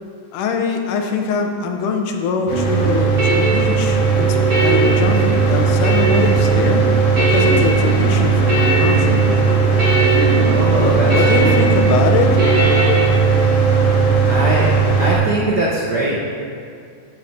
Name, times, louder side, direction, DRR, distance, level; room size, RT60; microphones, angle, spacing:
voice 1, 0.3-6.8 7.2-9.2 10.8-12.4, left 5 dB, 80° left, 4 dB, 2.4 m, -23 dB
Mechanical fan, 2.5-15.2, right 5 dB, 55° left, 2.3 m, -16 dB
sound 1, 2.5-13.0, right 1 dB, 30° right, 3.1 m, -22 dB
voice 2, 10.4-11.1 11.4-11.7 14.2-16.2, right 1 dB, 70° right, -4 dB, 0.9 m, -21 dB
7.7 x 7.0 x 7.0 m, 2.4 s
omnidirectional pair, 3.6 m